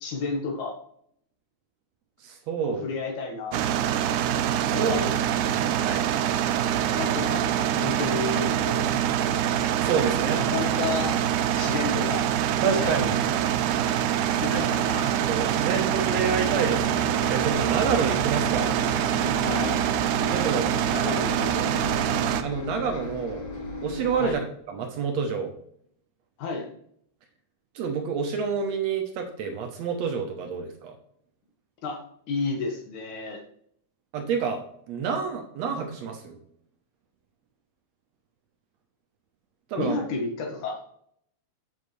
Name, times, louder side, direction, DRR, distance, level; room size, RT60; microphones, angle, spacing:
voice 1, 0.0-0.8 2.6-3.6 4.7-5.0 6.9-8.9 10.3-11.2 11.6-12.3 12.6-13.5 14.3-15.6 19.4-19.8 20.9-21.7 24.2-24.4 26.4-26.7 31.8-32.0 32.3-33.4 39.8-40.8, left 4 dB, 75° left, 2 dB, 2.9 m, -32 dB
voice 2, 2.2-2.8 4.6-5.1 5.6-6.1 9.8-10.4 12.6-13.2 14.5-14.7 15.0-18.7 20.3-20.7 22.4-23.5 23.8-24.4 24.7-25.5 27.8-31.0 34.1-34.6 34.9-36.4 39.7-40.0, right 6 dB, 70° right, 4 dB, 1.9 m, -28 dB
sound 1, 3.5-22.4, right 10 dB, 85° right, 2.1 m, -25 dB
Bus, 16.2-24.3, left 1 dB, 45° left, 2.3 m, -36 dB
7.5 x 7.4 x 3.2 m, 0.67 s
omnidirectional pair, 3.5 m